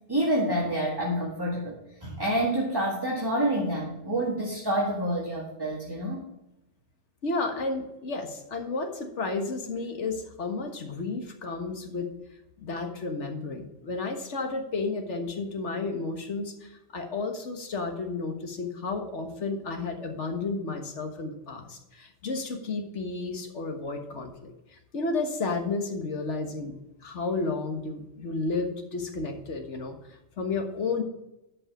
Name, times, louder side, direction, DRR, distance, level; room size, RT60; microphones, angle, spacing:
voice 1, 0.1-6.2, right 1 dB, 20° right, -3 dB, 1.8 m, -28 dB
voice 2, 7.2-12.1 12.6-31.0, left 3 dB, 70° left, 4 dB, 1.7 m, -32 dB
12.5 x 5.4 x 5.1 m, 0.92 s
omnidirectional pair, 1.2 m